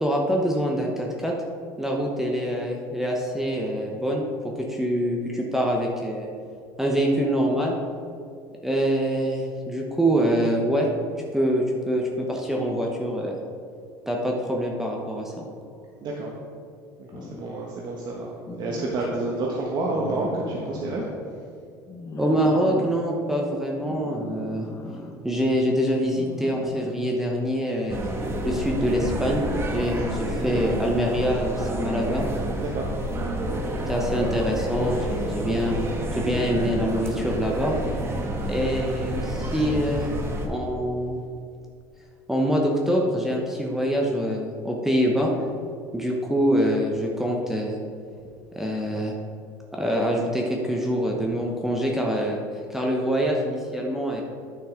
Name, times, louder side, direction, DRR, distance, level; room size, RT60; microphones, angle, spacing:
voice 1, 0.0-1.3 1.8-6.3 6.8-7.7 8.6-10.9 11.3-13.4 14.1-15.4 22.2-24.7 25.2-28.1 28.4-32.3 33.8-37.8 38.4-40.1 40.5-41.2 42.3-45.3 45.9-47.8 48.6-49.1 49.7-52.4 52.7-54.2, equal, 5° right, -1 dB, 1.0 m, -25 dB
voice 2, 17.0-18.3 18.6-21.0 32.6-32.9, right 2 dB, 50° right, -3 dB, 1.3 m, -29 dB
sound 1, 17.1-17.5 18.5-19.4 19.9-21.1 21.9-23.0 23.9-25.1 26.1-27.1 29.0-29.1, left 2 dB, 35° left, 1.2 m, -38 dB
sound 2, 27.9-40.5, right 1 dB, 25° right, 1.4 m, -29 dB
10.0 x 5.7 x 3.8 m, 2.4 s
supercardioid pair, 85°, 9 cm